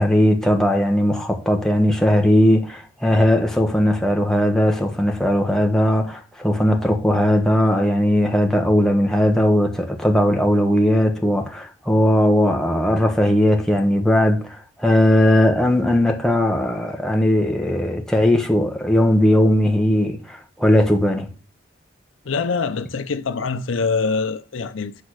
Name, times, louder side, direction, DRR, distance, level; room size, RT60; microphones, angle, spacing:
voice 1, 0.0-21.3, left 1 dB, 5° left, 1.2 m, -18 dB
voice 2, 22.2-25.0, left 4 dB, 85° left, 0.7 m, -24 dB
8.4 x 4.2 x 6.4 m
head